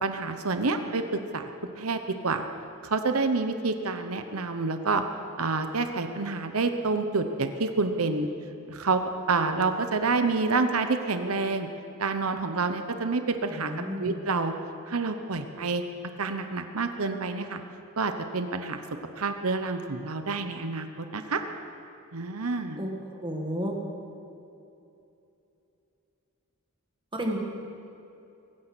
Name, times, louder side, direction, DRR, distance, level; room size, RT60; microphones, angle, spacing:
voice 1, 0.0-1.5 1.8-2.5 2.8-5.0 5.4-8.3 8.7-9.0 9.3-11.7 12.0-13.7 14.0-14.5 14.9-15.8 16.2-17.6 18.0-18.8 19.2-21.4 22.1-22.8, right 3 dB, 85° right, 7 dB, 1.0 m, -28 dB
voice 2, 13.5-14.2 22.8-23.8 27.2-27.4, equal, 25° right, 1 dB, 2.0 m, -32 dB
23.0 x 9.9 x 6.3 m, 2.8 s
head